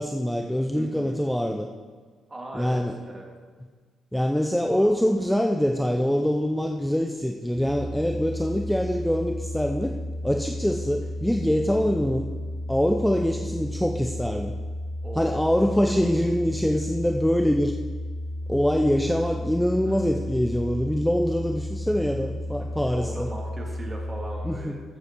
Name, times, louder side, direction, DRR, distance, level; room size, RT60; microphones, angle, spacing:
voice 1, 0.0-1.7 2.5-3.0 4.1-10.0 10.2-12.3 12.7-14.5 15.1-17.7 18.5-23.3 24.4-24.8, equal, 5° left, 4 dB, 0.7 m, -24 dB
voice 2, 0.7-1.2 2.3-3.3 4.7-4.9 15.0-15.6 15.9-16.1 19.8-20.1 22.6-24.8, right 2 dB, 20° right, 0 dB, 2.6 m, -39 dB
sound 1, 7.6-24.5, left 1 dB, 35° left, 2.7 m, -33 dB
13.5 x 7.8 x 4.6 m, 1.5 s
cardioid pair, 90°, 0 cm